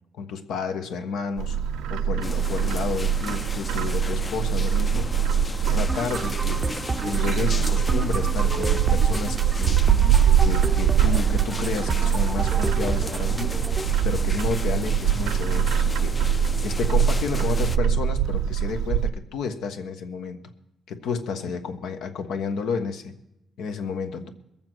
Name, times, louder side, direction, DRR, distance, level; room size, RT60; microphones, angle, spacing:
voice 1, 0.1-1.6 1.9-5.1 5.7-6.6 7.0-9.8 10.4-13.6 14.0-16.2 16.6-20.4 20.9-23.1 23.6-24.3, left 5 dB, 80° left, 7 dB, 1.2 m, -31 dB
Bird, 1.4-19.1, right 8 dB, 90° right, 0.5 m, -23 dB
sound 1, 2.2-17.8, left 3 dB, 25° left, 0.5 m, -36 dB
sound 2, 5.9-13.9, right 3 dB, 30° right, 0.5 m, -32 dB
21.5 x 7.2 x 6.2 m, 0.85 s
cardioid pair, 90°, 0 cm